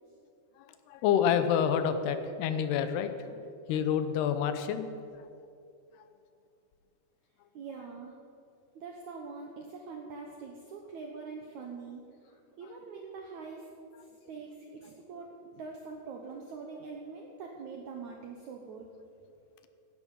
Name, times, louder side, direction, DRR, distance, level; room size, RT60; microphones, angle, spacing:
voice 1, 0.9-4.9, left 8 dB, 80° left, 10 dB, 2.8 m, -28 dB
voice 2, 7.5-8.2 8.8-13.7 14.3-18.9, right 4 dB, 75° right, 1 dB, 1.7 m, -44 dB
16.0 x 11.0 x 5.5 m, 2.5 s
omnidirectional pair, 4.7 m